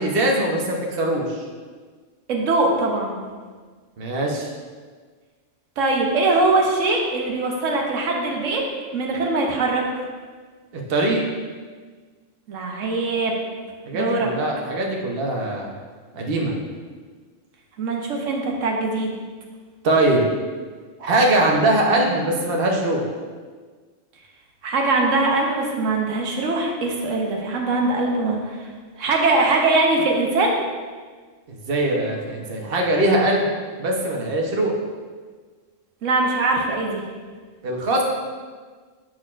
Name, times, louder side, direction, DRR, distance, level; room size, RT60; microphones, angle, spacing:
voice 1, 0.0-1.4 4.0-4.5 10.7-11.2 13.9-15.7 16.1-16.6 19.8-20.2 21.0-23.1 31.5-33.5 33.8-34.7 37.6-38.0, right 1 dB, 50° right, -1 dB, 1.0 m, -21 dB
voice 2, 2.3-3.2 5.8-8.6 8.9-10.0 12.5-13.4 13.9-14.3 17.8-19.1 24.6-28.6 29.0-30.6 36.0-37.0, right 2 dB, 85° right, 0 dB, 1.2 m, -22 dB
7.4 x 6.4 x 2.4 m, 1.5 s
omnidirectional pair, 1.3 m